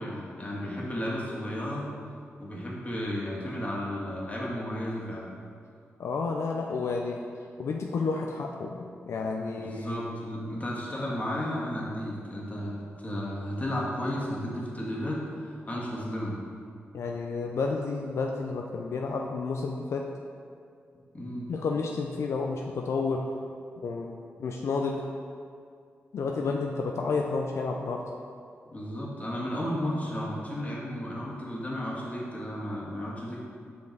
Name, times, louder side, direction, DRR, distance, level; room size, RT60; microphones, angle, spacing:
voice 1, 0.0-1.8 2.4-5.3 9.6-12.7 13.0-16.3 21.1-21.5 28.7-33.4, equal, 30° left, -4 dB, 1.5 m, -33 dB
voice 2, 6.0-7.2 7.6-9.9 16.9-20.1 21.5-23.2 23.8-24.1 24.4-25.0 26.1-28.0, left 4 dB, 75° left, 1 dB, 0.4 m, -31 dB
5.1 x 5.1 x 4.0 m, 2.3 s
cardioid pair, 55°, 5 cm